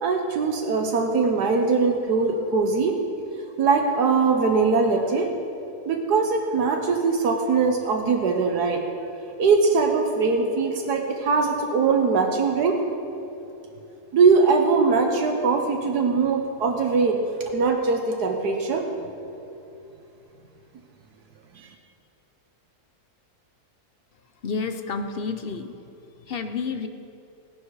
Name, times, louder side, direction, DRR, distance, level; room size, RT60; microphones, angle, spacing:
voice 1, 0.0-3.0 3.6-5.3 5.9-8.8 9.4-12.8 14.1-17.2 17.5-18.9 21.6-21.7, right 4 dB, 80° right, 2 dB, 1.6 m, -21 dB
voice 2, 24.4-25.8 26.2-26.9, left 5 dB, 50° left, 7 dB, 0.8 m, -30 dB
17.5 x 11.0 x 4.8 m, 2.8 s
omnidirectional pair, 1.7 m